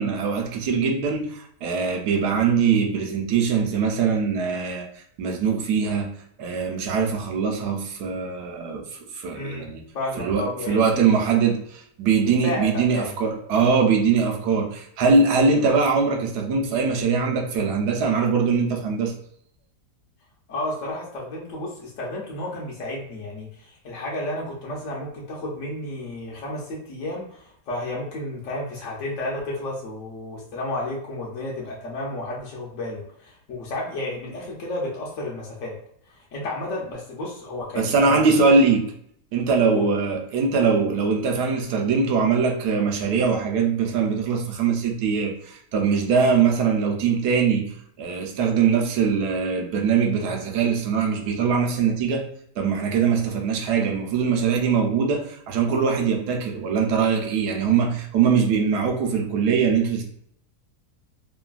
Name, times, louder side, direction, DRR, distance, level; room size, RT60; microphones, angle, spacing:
voice 1, 0.0-4.9 5.2-6.1 6.4-8.9 9.1-9.8 10.2-19.1 37.8-38.9 39.3-52.2 52.6-60.0, right 5 dB, 75° right, 2 dB, 1.1 m, -22 dB
voice 2, 9.3-9.7 9.9-11.0 12.2-13.1 20.5-35.8 36.1-38.3 39.7-39.9, left 1 dB, 60° left, -3 dB, 0.9 m, -32 dB
3.1 x 2.2 x 2.3 m, 0.69 s
omnidirectional pair, 1.8 m